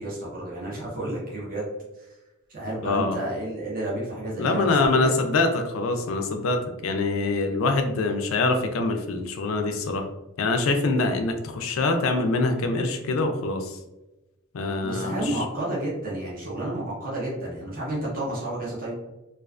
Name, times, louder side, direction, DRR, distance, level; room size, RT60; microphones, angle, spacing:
voice 1, 0.0-2.2 2.5-5.1 14.8-19.1, right 1 dB, 40° right, -6 dB, 0.7 m, -31 dB
voice 2, 2.8-3.2 4.4-10.1 10.4-13.8 14.5-15.3, left 3 dB, 75° left, 5 dB, 0.4 m, -24 dB
2.4 x 2.3 x 2.3 m, 1.0 s
head